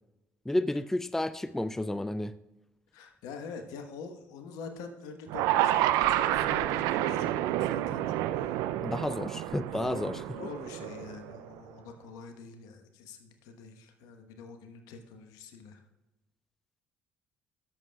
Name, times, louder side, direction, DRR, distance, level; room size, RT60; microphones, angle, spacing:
voice 1, 0.5-2.3 8.8-10.2, left 1 dB, 5° left, 14 dB, 0.3 m, -31 dB
voice 2, 2.9-8.6 9.6-15.8, left 5 dB, 75° left, 6 dB, 1.1 m, -45 dB
sound 1, 5.3-11.5, right 13 dB, 75° right, 0.4 m, -29 dB
13.5 x 7.1 x 2.3 m, 1.0 s
hypercardioid pair, 55°, 6 cm